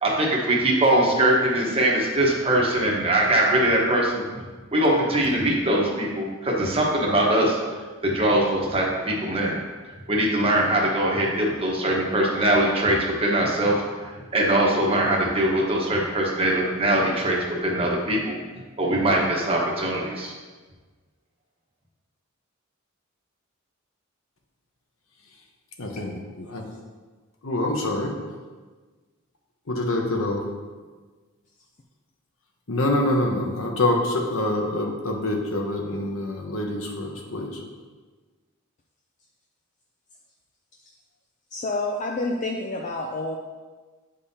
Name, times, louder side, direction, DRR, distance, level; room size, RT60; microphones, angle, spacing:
voice 1, 0.0-4.4 4.7-7.6 8.0-9.6 10.1-18.4 18.8-20.3, right 1 dB, 25° right, -3 dB, 1.1 m, -22 dB
voice 2, 25.8-26.1 26.5-26.6 27.4-28.1 29.7-30.4 32.7-37.6, left 1 dB, 70° left, 1 dB, 1.0 m, -25 dB
voice 3, 41.5-43.4, left 2 dB, 35° left, 1 dB, 0.4 m, -28 dB
8.3 x 5.4 x 2.8 m, 1.4 s
head